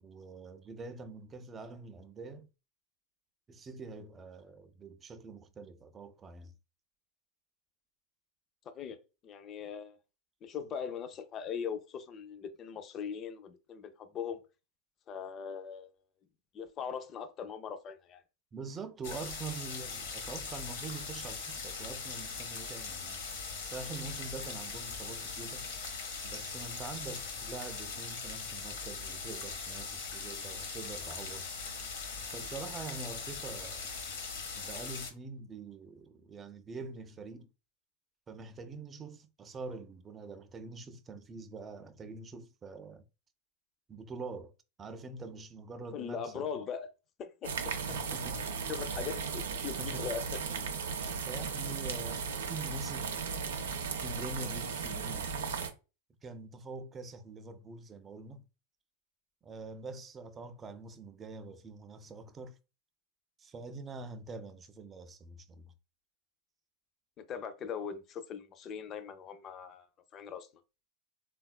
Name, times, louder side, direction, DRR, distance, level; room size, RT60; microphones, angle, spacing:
voice 1, 0.0-2.5 3.5-6.5 18.5-23.2 23.6-25.7 26.2-31.5 32.3-33.9 34.6-37.5 38.3-43.0 43.9-44.5 44.8-46.5 47.9-48.5 49.8-50.1 51.3-53.1 54.0-55.3 56.2-58.5 59.4-62.6 63.4-65.7, right 3 dB, 25° right, 0.4 m, -45 dB
voice 2, 9.2-9.9 10.4-14.4 15.1-15.9 16.5-18.2 45.9-46.9 47.2-47.5 48.7-50.3 67.3-69.8 70.1-70.5, left 7 dB, 35° left, 0.5 m, -40 dB
sound 1, 19.0-35.1, left 5 dB, 75° left, 0.9 m, -40 dB
sound 2, 47.4-55.7, right 5 dB, 80° right, 0.4 m, -36 dB
3.4 x 2.3 x 2.2 m
hypercardioid pair, 105°, 0 cm